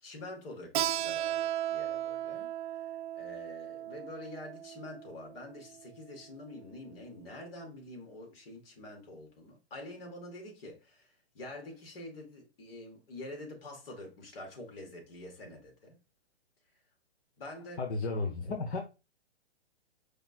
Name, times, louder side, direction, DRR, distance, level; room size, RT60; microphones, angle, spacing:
voice 1, 0.0-2.5 3.2-16.0 17.4-17.8, left 2 dB, 60° left, 2.0 m, -46 dB
Keyboard (musical), 0.7-6.0, right 12 dB, 50° right, 0.5 m, -36 dB
voice 2, 17.8-18.8, left 3 dB, 80° left, 0.9 m, -33 dB
4.9 x 2.3 x 4.3 m
hypercardioid pair, 145°, 33 cm